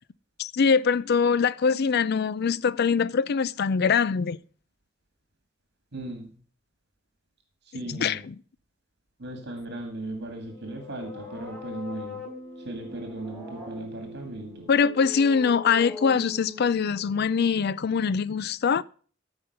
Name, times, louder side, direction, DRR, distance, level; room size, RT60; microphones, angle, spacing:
voice 1, 0.4-4.4 7.9-8.3 14.7-18.8, left 6 dB, 55° left, 0.4 m, -23 dB
voice 2, 5.9-6.3 7.7-8.2 9.2-12.2 12.7-14.7, right 2 dB, 60° right, 2.1 m, -37 dB
sound 1, 10.3-18.1, left 3 dB, 10° left, 5.6 m, -42 dB
13.5 x 5.3 x 6.6 m
head